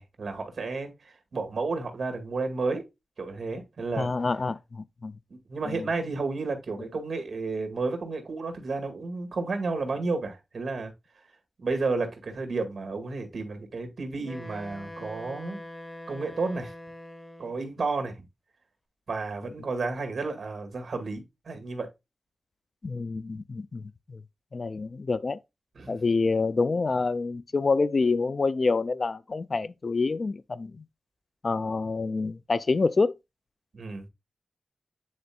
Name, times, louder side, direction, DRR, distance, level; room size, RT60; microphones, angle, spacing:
voice 1, 0.0-2.8 3.2-4.1 5.3-10.9 11.6-15.6 16.1-16.7 17.4-18.2 19.1-21.9 25.8-26.0 33.7-34.1, right 3 dB, 60° right, 2.0 m, -32 dB
voice 2, 4.0-5.1 5.7-5.9 22.8-23.8 24.1-24.2 24.5-25.4 25.9-30.8 31.4-33.1, left 4 dB, 50° left, 0.4 m, -27 dB
Wind instrument woodwind instrument, 14.2-17.7, left 1 dB, 15° left, 1.1 m, -43 dB
9.5 x 4.3 x 2.3 m
wide cardioid pair, 85°, 0 cm